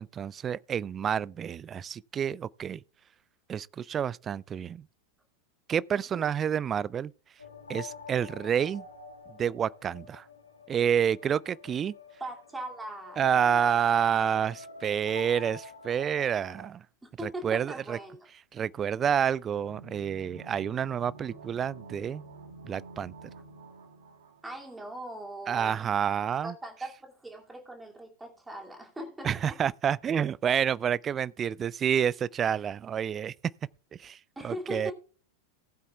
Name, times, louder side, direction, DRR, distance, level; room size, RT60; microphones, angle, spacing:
voice 1, 0.0-2.8 3.5-4.8 5.7-7.1 7.7-8.8 9.4-10.2 10.7-11.9 13.2-16.8 17.2-18.0 18.5-22.2 22.7-23.1 25.5-26.5 29.2-33.3 34.0-34.2 34.4-34.9, right 8 dB, 25° right, 0.4 m, -28 dB
sound 1, 7.4-16.7, left 5 dB, 80° left, 2.3 m, -46 dB
voice 2, 12.2-13.2 17.0-18.2 24.4-25.8 26.4-29.6 34.4-34.9, right 1 dB, 10° right, 2.5 m, -40 dB
sound 2, 19.5-25.2 25.4-25.5, right 3 dB, 65° right, 2.0 m, -49 dB
18.5 x 8.4 x 2.3 m
figure-of-eight pair, 90°, 0 cm